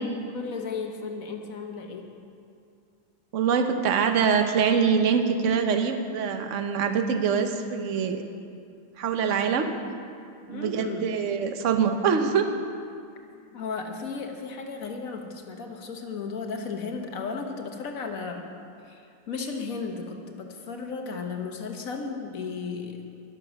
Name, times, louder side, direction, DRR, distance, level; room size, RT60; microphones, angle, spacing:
voice 1, 0.3-2.1 10.5-11.1 13.5-18.4 18.8-23.0, left 4 dB, 55° left, 3 dB, 1.5 m, -34 dB
voice 2, 3.3-8.2 9.0-9.7 10.5-12.5, right 6 dB, 55° right, 6 dB, 1.1 m, -24 dB
11.5 x 11.0 x 6.4 m, 2.4 s
omnidirectional pair, 1.8 m